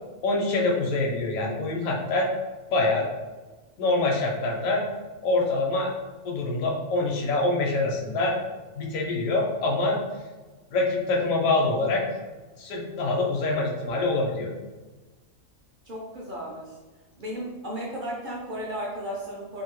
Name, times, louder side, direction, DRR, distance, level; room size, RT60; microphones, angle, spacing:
voice 1, 0.2-2.3 2.7-3.1 3.8-4.8 5.2-5.9 6.2-8.4 8.7-10.0 10.7-12.0 12.6-14.5, left 2 dB, 80° left, -1 dB, 1.0 m, -25 dB
voice 2, 15.8-16.8 17.2-19.6, equal, 55° right, -5 dB, 0.5 m, -34 dB
2.7 x 2.6 x 3.0 m, 1.2 s
omnidirectional pair, 1.4 m